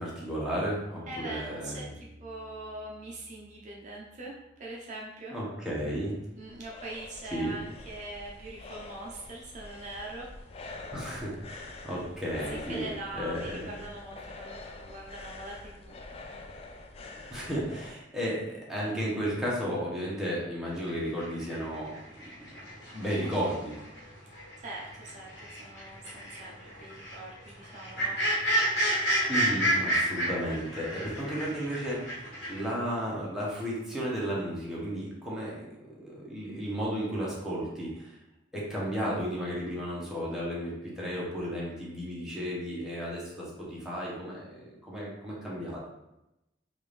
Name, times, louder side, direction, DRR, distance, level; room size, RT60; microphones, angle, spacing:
voice 1, 0.0-1.9 5.3-6.2 7.3-7.6 10.9-13.8 17.3-21.9 22.9-23.7 29.3-32.2 32.5-38.1 38.5-45.8, equal, 5° right, -6 dB, 0.9 m, -33 dB
Bass guitar, 1.1-4.8, equal, 30° right, 1.4 m, -53 dB
voice 2, 1.1-5.3 6.4-10.3 12.5-16.0 24.6-28.2, right 2 dB, 45° right, -3 dB, 0.5 m, -42 dB
sound 1, 6.1-18.0, left 2 dB, 35° left, 0.3 m, -45 dB
sound 2, 20.9-24.1 24.3-32.6, right 1 dB, 75° left, 1.2 m, -31 dB
3.5 x 2.5 x 3.2 m, 0.91 s
head